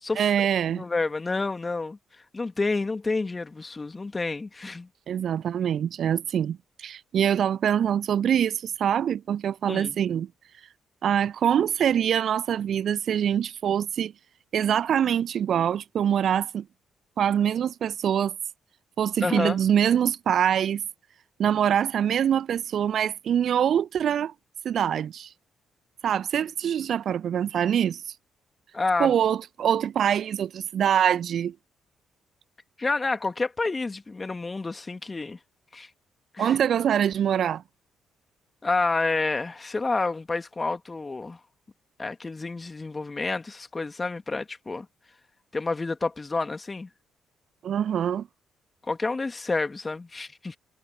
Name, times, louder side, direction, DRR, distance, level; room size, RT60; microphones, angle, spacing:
voice 1, 0.2-0.8 5.1-10.3 11.0-14.1 14.5-16.6 17.2-18.3 19.0-20.8 21.4-24.3 24.6-25.3 26.0-28.0 29.0-31.5 36.4-37.6 47.6-48.3, right 9 dB, 55° right, 1.4 m, -24 dB
voice 2, 0.7-2.0 2.3-4.9 9.7-9.9 19.2-19.6 28.7-29.1 32.8-35.4 35.7-35.9 36.3-36.5 38.6-41.4 42.0-44.9 45.5-46.9 48.9-50.6, left 3 dB, 25° left, 2.8 m, -29 dB
figure-of-eight pair, 40°, 0 cm